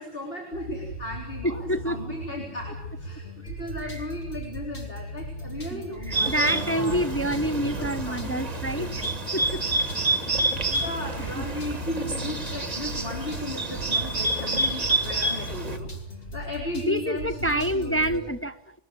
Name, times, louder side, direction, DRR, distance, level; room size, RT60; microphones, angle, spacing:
voice 1, 0.0-8.6 10.7-18.2, left 1 dB, 50° left, -1 dB, 4.1 m, -36 dB
sound 1, 0.5-18.2, equal, 90° left, 2.9 m, -38 dB
voice 2, 1.4-2.0 3.9-4.0 5.7-9.0 9.3-9.6 11.4-11.5 16.9-18.8, equal, 10° left, 8 dB, 0.8 m, -27 dB
Bird, 6.1-15.8, right 2 dB, 30° right, 1.8 m, -28 dB
22.0 x 20.0 x 8.0 m, 0.78 s
omnidirectional pair, 1.3 m